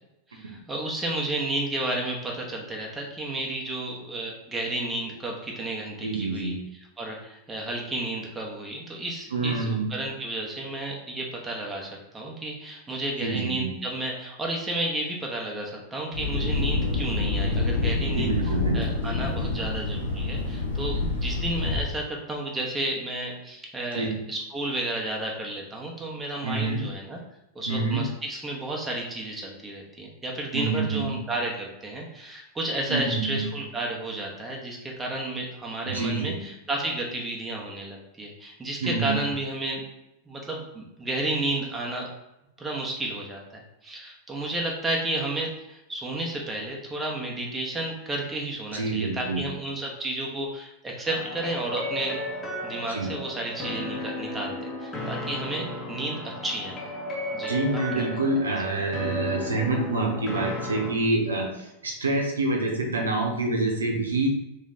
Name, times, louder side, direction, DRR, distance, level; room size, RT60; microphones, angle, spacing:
voice 1, 0.3-6.6 7.0-18.3 18.7-27.2 27.5-39.8 40.3-42.1 42.6-52.2 52.6-56.8 57.3-57.5 58.0-58.1, right 2 dB, 15° right, -2 dB, 0.9 m, -32 dB
voice 2, 6.0-6.6 9.3-9.9 13.2-13.7 18.1-18.8 24.0-24.2 26.4-26.8 27.7-28.0 30.5-31.2 32.9-33.4 35.9-36.4 38.8-39.1 48.7-49.4 52.9-53.1 57.5-64.3, right 3 dB, 75° right, 0 dB, 0.9 m, -27 dB
Thunder, 16.1-21.8, left 3 dB, 70° left, 0.8 m, -27 dB
sound 1, 51.1-60.9, left 1 dB, 15° left, 1.1 m, -34 dB
3.2 x 3.0 x 3.9 m, 0.91 s
figure-of-eight pair, 90°, 0 cm